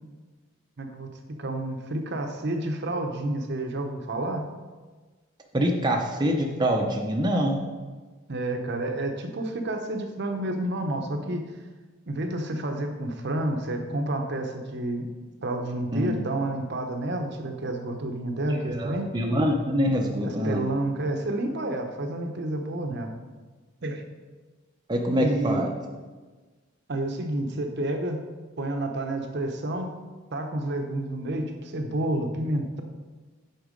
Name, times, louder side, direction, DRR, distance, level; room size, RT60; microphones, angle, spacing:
voice 1, 0.8-4.5 8.3-11.5 12.1-15.1 15.4-19.1 20.2-23.1 23.8-24.0 25.2-25.6 26.9-28.3 28.6-29.9 30.3-32.8, right 1 dB, 60° right, 4 dB, 0.8 m, -30 dB
voice 2, 5.5-7.6 15.9-16.2 18.7-20.6 24.9-25.7, equal, 20° right, 1 dB, 0.6 m, -25 dB
8.0 x 4.5 x 5.1 m, 1.3 s
head